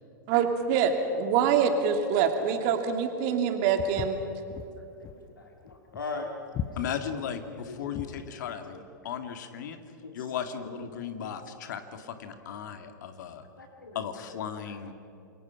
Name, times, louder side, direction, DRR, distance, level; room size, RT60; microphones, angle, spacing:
voice 1, 0.3-4.2, right 7 dB, 50° right, 5 dB, 2.8 m, -25 dB
Walk footsteps, 3.8-8.3, left 8 dB, 30° left, 1.2 m, -38 dB
voice 2, 4.8-5.1 5.3-6.3 7.5-8.0 10.0-10.1 10.7-10.8 11.2-11.3 13.6-14.0, left 4 dB, 85° left, 3 dB, 2.1 m, -40 dB
voice 3, 6.8-9.8 10.1-13.5 13.9-14.9, left 8 dB, 65° left, 8 dB, 2.1 m, -36 dB
28.5 x 22.5 x 5.8 m, 2.8 s
hypercardioid pair, 95°, 11 cm